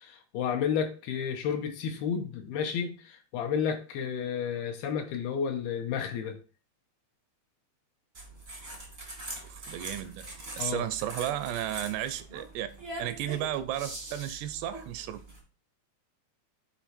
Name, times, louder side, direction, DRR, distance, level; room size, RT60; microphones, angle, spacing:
voice 1, 0.0-6.4 10.6-10.8, left 7 dB, 80° left, 2.7 m, -31 dB
sound 1, 8.1-15.4, right 2 dB, 50° right, 0.6 m, -43 dB
voice 2, 9.5-10.3 10.5-12.7 13.0-15.2, right 12 dB, 85° right, 2.8 m, -33 dB
8.2 x 4.1 x 4.4 m
omnidirectional pair, 4.8 m